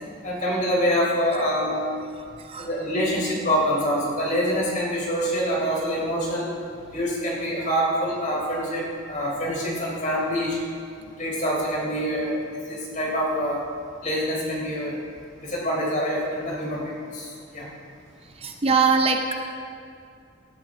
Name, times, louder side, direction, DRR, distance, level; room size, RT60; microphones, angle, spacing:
voice 1, 0.2-1.8 2.6-6.5 6.8-10.6 11.2-13.7 14.0-15.0 15.4-17.7, equal, 40° left, -4 dB, 3.9 m, -26 dB
voice 2, 18.4-19.3, right 4 dB, 30° right, 4 dB, 0.6 m, -21 dB
18.5 x 11.5 x 3.8 m, 2.4 s
head